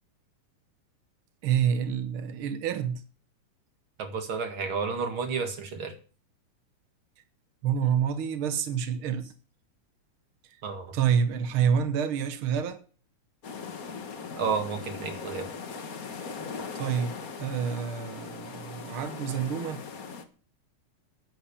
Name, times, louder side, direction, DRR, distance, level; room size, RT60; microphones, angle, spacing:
voice 1, 1.4-3.0 7.6-9.3 10.4-10.6 10.9-12.8 16.7-19.8, right 8 dB, 75° right, 1.2 m, -28 dB
voice 2, 4.0-5.9 10.6-10.9 14.4-15.5, right 5 dB, 45° right, 2.4 m, -31 dB
sound 1, 13.4-20.2, left 5 dB, 90° left, 0.7 m, -39 dB
10.5 x 10.0 x 7.0 m
omnidirectional pair, 3.8 m